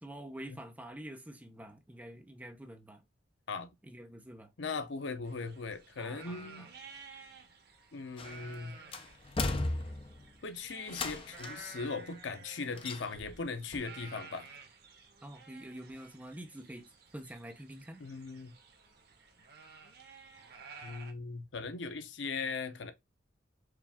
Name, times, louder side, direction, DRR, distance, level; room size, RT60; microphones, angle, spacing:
voice 1, 0.0-3.0 3.8-4.5 6.0-6.7 15.2-16.8 17.1-18.0, right 1 dB, 10° right, 0.6 m, -47 dB
voice 2, 4.6-6.7 7.9-8.8 10.4-14.5 18.0-18.5 20.8-22.9, left 4 dB, 85° left, 0.6 m, -39 dB
sound 1, 5.2-21.1, right 4 dB, 60° right, 1.0 m, -53 dB
sound 2, 8.2-8.5 8.9-10.3 10.9-11.7 12.8-13.4 13.7-13.8, left 2 dB, 30° left, 0.5 m, -36 dB
4.7 x 2.4 x 3.5 m
head